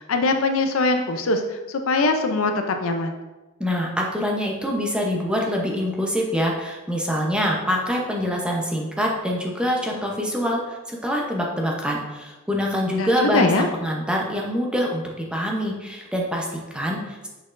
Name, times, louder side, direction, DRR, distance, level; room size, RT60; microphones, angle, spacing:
voice 1, 0.0-3.1 12.9-13.7, left 3 dB, 65° left, 5 dB, 0.5 m, -22 dB
voice 2, 3.6-17.3, equal, 5° right, -1 dB, 0.7 m, -25 dB
6.3 x 5.9 x 2.6 m, 1.1 s
head